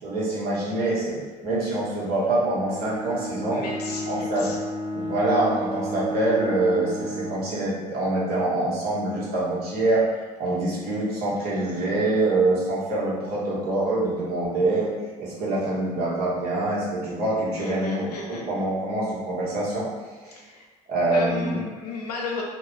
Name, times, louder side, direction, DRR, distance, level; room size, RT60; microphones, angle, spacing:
voice 1, 0.0-3.6 4.1-4.5 4.9-10.0 10.4-14.9 15.2-19.9 20.9-21.6, right 2 dB, 55° right, -7 dB, 1.4 m, -25 dB
Bowed string instrument, 2.6-7.5, equal, 20° right, 0.7 m, -32 dB
voice 2, 3.5-4.6 17.6-18.4 20.3-20.7 21.1-22.4, left 3 dB, 90° left, -2 dB, 0.7 m, -34 dB
2.8 x 2.3 x 3.8 m, 1.4 s
hypercardioid pair, 70°, 20 cm